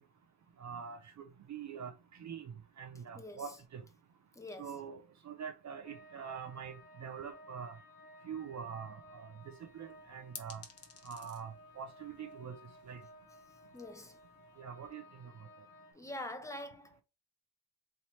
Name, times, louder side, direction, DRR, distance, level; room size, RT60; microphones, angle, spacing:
voice 1, 0.6-3.8 4.6-5.0 5.2-7.8 8.2-9.3 9.7-10.6 11.0-12.6 12.8-13.0 14.6-15.3, right 7 dB, 45° right, 0.5 m, -44 dB
voice 2, 3.1-3.5 4.3-4.8 13.7-14.2 15.9-17.0, left 1 dB, 10° left, 0.6 m, -45 dB
sound 1, 5.8-15.9, left 1 dB, 55° left, 1.4 m, -57 dB
sound 2, 9.4-14.6, left 5 dB, 35° left, 0.9 m, -56 dB
3.2 x 2.8 x 4.1 m
cardioid pair, 125°, 40 cm